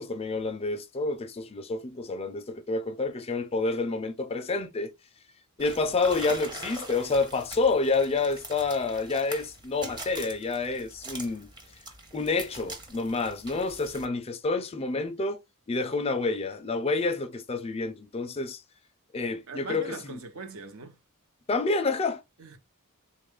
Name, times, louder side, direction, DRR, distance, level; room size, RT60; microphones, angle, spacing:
voice 1, 0.0-4.9 5.6-11.5 12.1-15.4 15.7-18.6 19.1-20.2 21.5-22.2, left 3 dB, 25° left, 0.4 m, -28 dB
sound 1, 5.6-14.1, right 2 dB, 20° right, 0.8 m, -43 dB
voice 2, 19.5-20.9 22.4-22.6, right 4 dB, 65° right, 0.7 m, -40 dB
3.5 x 2.3 x 3.5 m
head